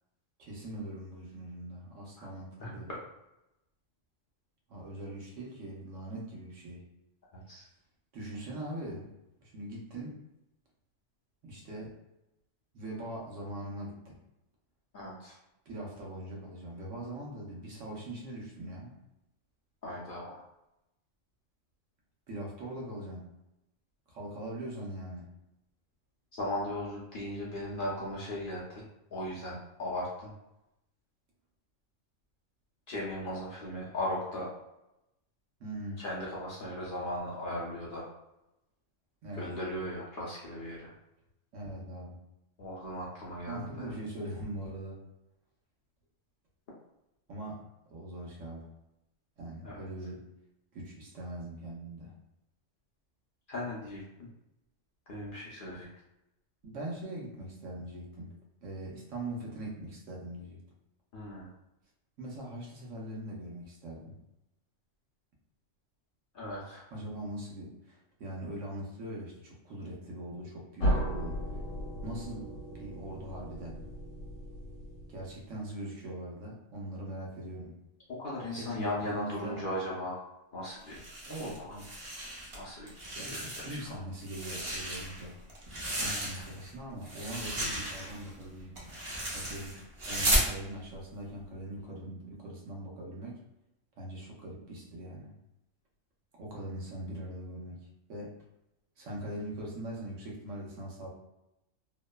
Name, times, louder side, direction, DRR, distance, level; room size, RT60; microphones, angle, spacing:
voice 1, 0.4-2.9 4.7-6.9 8.1-9.1 9.4-10.2 11.4-12.0 12.7-14.1 15.7-19.0 22.3-23.2 24.1-25.3 35.6-36.0 39.2-39.5 41.5-42.2 43.5-45.0 47.3-48.7 49.4-50.2 50.7-52.2 56.6-58.4 58.6-60.6 62.2-64.2 66.9-71.4 72.0-72.5 72.8-73.9 75.1-77.8 78.6-79.6 81.3-81.8 83.1-85.4 86.0-88.7 89.3-89.8 90.1-93.4 94.0-95.3 96.4-97.8 98.1-98.3 99.0-101.1, right 1 dB, 75° right, -2 dB, 1.0 m, -41 dB
voice 2, 7.3-7.7 14.9-15.4 19.8-20.4 26.3-28.8 29.1-30.3 32.9-34.5 36.0-38.1 39.3-40.9 42.6-43.9 49.6-49.9 53.5-54.3 55.1-55.9 61.1-61.5 66.3-66.8 78.1-80.2 80.5-81.0 81.3-81.8 82.5-82.9 83.3-83.9 86.0-86.4, left 1 dB, 55° left, -6 dB, 0.6 m, -37 dB
sound 1, 70.8-75.6, equal, 70° left, 1.1 m, -35 dB
sound 2, 80.9-82.6 82.9-83.9 84.2-86.7 87.0-90.5, right 1 dB, 35° right, 0.5 m, -34 dB
2.9 x 2.0 x 2.2 m, 0.90 s
omnidirectional pair, 1.3 m